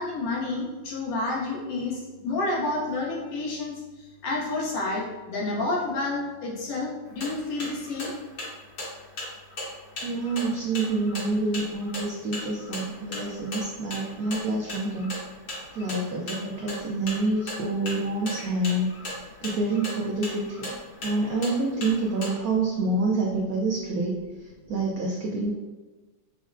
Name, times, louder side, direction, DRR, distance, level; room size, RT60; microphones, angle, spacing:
voice 1, 0.0-8.2, left 2 dB, 70° left, -3 dB, 1.5 m, -30 dB
sound 1, 7.1-22.3, left 1 dB, 55° left, 1.4 m, -37 dB
voice 2, 10.0-15.2 15.7-20.7 21.0-25.5, right 2 dB, 85° right, -2 dB, 0.7 m, -27 dB
6.1 x 2.0 x 2.5 m, 1.2 s
omnidirectional pair, 2.1 m